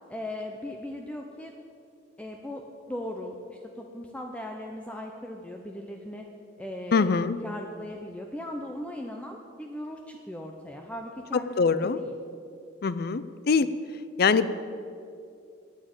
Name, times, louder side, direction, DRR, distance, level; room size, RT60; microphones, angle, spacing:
voice 1, 0.1-1.5 2.2-6.3 6.6-11.6 11.8-12.1, left 1 dB, 5° left, 2 dB, 0.6 m, -38 dB
voice 2, 6.9-7.4 11.6-12.0 12.8-13.7 14.2-14.5, left 5 dB, 55° left, 14 dB, 0.5 m, -23 dB
8.9 x 8.8 x 8.9 m, 2.5 s
head